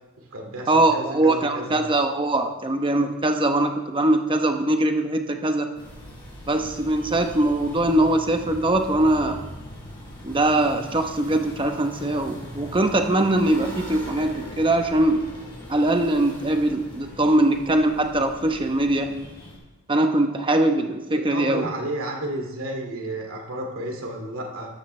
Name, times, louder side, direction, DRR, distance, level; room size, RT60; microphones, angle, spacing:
voice 1, 0.2-1.8 21.1-24.8, right 1 dB, 65° right, 1 dB, 2.4 m, -32 dB
voice 2, 0.7-5.7 6.5-9.4 10.2-15.2 15.7-19.1 19.9-21.7, right 1 dB, 25° right, 5 dB, 0.9 m, -22 dB
sound 1, 5.7-19.6, equal, 20° left, 4.5 m, -40 dB
13.0 x 13.0 x 3.3 m, 1.1 s
head